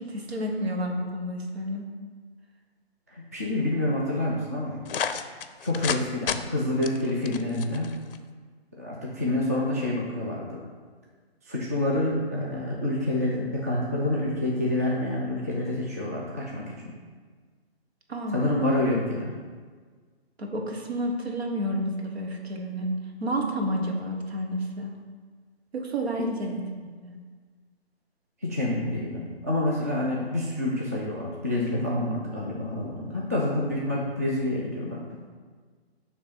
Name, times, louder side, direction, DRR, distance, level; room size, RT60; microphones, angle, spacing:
voice 1, 0.0-1.8 18.1-18.5 20.4-22.9 23.2-24.9 25.7-27.1, equal, 75° right, 2 dB, 1.2 m, -30 dB
voice 2, 3.1-4.8 5.6-7.9 8.8-10.6 11.4-16.9 18.3-19.3 26.2-26.3 28.4-35.2, left 1 dB, 15° right, -4 dB, 0.3 m, -28 dB
sound 1, 4.9-6.0 6.3-6.4 6.8-8.2, left 7 dB, 60° left, 0.5 m, -30 dB
6.8 x 3.1 x 5.4 m, 1.5 s
hypercardioid pair, 145°, 31 cm